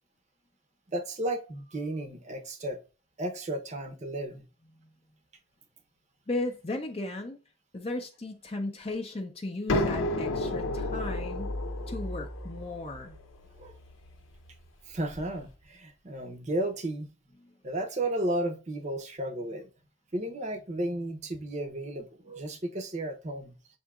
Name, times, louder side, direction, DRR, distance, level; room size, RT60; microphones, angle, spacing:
voice 1, 0.9-2.8 3.2-4.5 11.8-11.9 13.6-13.7 14.9-17.1 17.6-19.7 20.1-23.5, right 1 dB, 35° right, 0.7 m, -33 dB
voice 2, 6.3-7.4 7.7-11.5 11.9-13.2 17.4-17.5, left 2 dB, 30° left, 0.5 m, -36 dB
sound 1, 9.7-15.3, left 1 dB, 85° left, 0.8 m, -32 dB
7.0 x 2.7 x 2.3 m
head